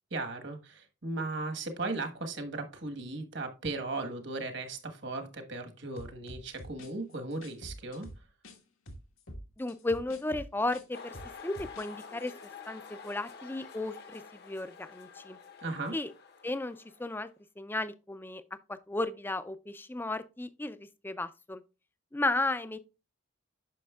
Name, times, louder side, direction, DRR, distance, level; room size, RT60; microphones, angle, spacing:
voice 1, 0.1-8.1 15.6-16.0, right 2 dB, 60° right, 1.4 m, -37 dB
sound 1, 6.0-8.6 8.9-11.9 12.2-12.4, equal, 85° left, 1.6 m, -46 dB
voice 2, 9.6-11.1 11.4-12.3 12.7-15.4 15.9-16.1 16.4-17.3 17.6-18.4 18.7-21.6 22.1-22.8, left 2 dB, 10° left, 0.4 m, -34 dB
sound 2, 10.9-17.2, left 5 dB, 50° left, 0.8 m, -49 dB
9.3 x 6.2 x 2.3 m
head